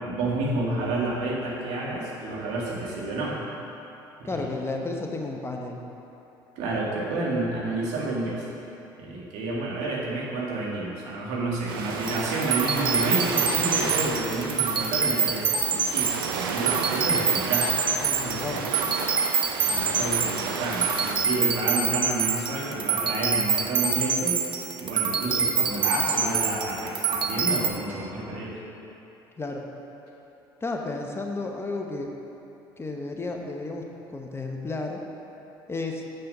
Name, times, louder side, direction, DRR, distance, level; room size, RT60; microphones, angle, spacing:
voice 1, 0.1-3.4 4.2-4.3 6.6-8.4 9.0-17.8 18.2-18.6 19.6-24.4 24.8-28.5, right 2 dB, 70° right, -4 dB, 1.9 m, -30 dB
voice 2, 4.2-5.8 18.0-18.7 29.4-29.7 30.6-32.1 32.8-33.8 34.1-35.0 35.7-36.0, left 3 dB, 20° left, 1 dB, 1.0 m, -32 dB
Ocean, 11.7-21.2, right 5 dB, 90° right, 0.6 m, -32 dB
sound 1, 12.0-27.7, right 6 dB, 45° right, 1.0 m, -26 dB
7.6 x 6.7 x 5.4 m, 2.9 s
hypercardioid pair, 70°, 12 cm